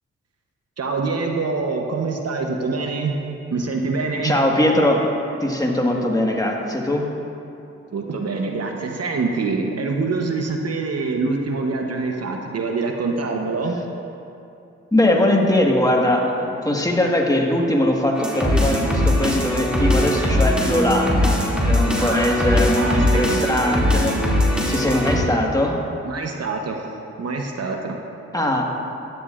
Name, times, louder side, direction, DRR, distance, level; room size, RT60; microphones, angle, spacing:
voice 1, 0.8-3.2 3.5-4.3 7.9-13.8 22.0-23.4 26.0-26.8 27.2-28.0, right 3 dB, 55° right, 2 dB, 1.0 m, -25 dB
voice 2, 4.2-5.1 5.4-7.1 14.9-24.2 24.7-25.8 28.3-28.6, left 1 dB, 10° left, 0 dB, 1.6 m, -20 dB
sound 1, 18.2-25.2, left 1 dB, 5° right, 2.5 m, -20 dB
13.5 x 10.5 x 2.5 m, 2.8 s
supercardioid pair, 50°, 30 cm